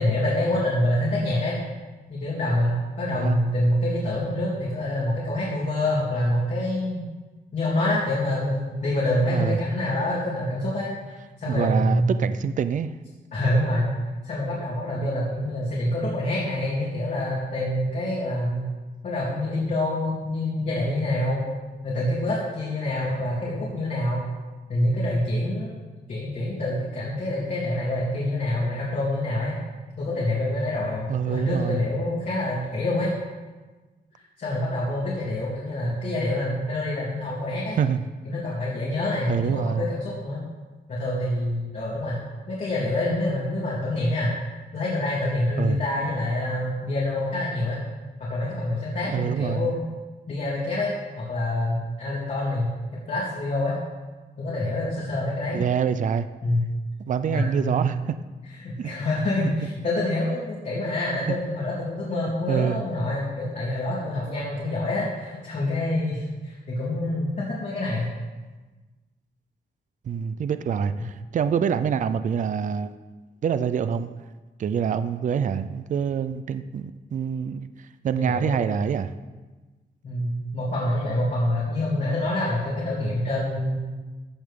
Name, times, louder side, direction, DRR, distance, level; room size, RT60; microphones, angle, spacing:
voice 1, 0.0-1.6 2.1-7.0 7.5-12.1 13.3-13.9 14.2-18.6 19.0-21.4 21.8-24.2 24.7-25.8 26.1-29.5 29.9-33.1 34.4-37.8 38.3-40.4 40.9-42.2 42.5-44.3 44.7-47.8 48.2-49.8 50.3-52.7 53.1-53.8 54.4-55.6 56.4-56.6 57.3-57.9 58.6-68.1 78.1-78.8 80.0-83.8, left 1 dB, 45° left, -8 dB, 3.3 m, -26 dB
voice 2, 3.1-3.4 9.3-9.6 11.5-12.9 31.1-31.8 37.8-38.0 39.3-39.9 45.6-45.8 49.1-49.7 55.5-56.3 57.1-58.2 58.8-59.0 61.3-61.4 62.5-62.8 70.1-73.0 73.4-74.1 74.6-79.1, right 7 dB, 50° right, 12 dB, 0.5 m, -26 dB
15.0 x 11.0 x 3.8 m, 1.3 s
wide cardioid pair, 175°, 17 cm